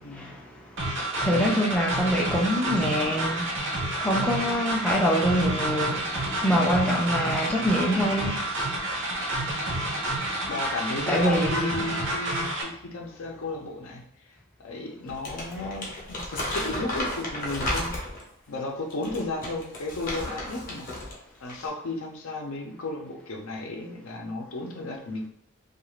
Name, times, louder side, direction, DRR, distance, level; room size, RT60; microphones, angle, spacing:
voice 1, 0.0-0.3 6.5-6.9 10.5-14.0 14.6-17.9 18.5-20.9 21.4-25.3, left 2 dB, 80° left, 0.6 m, -34 dB
sound 1, 0.8-12.6, right 1 dB, 55° right, 0.6 m, -29 dB
voice 2, 1.0-3.5 4.0-6.1 6.4-8.4 11.1-11.7, equal, 5° left, 0.3 m, -25 dB
Crumpling crinkling, 15.1-18.3 18.9-21.2 21.5-21.7, left 1 dB, 40° left, 0.8 m, -33 dB
2.4 x 2.4 x 3.1 m
head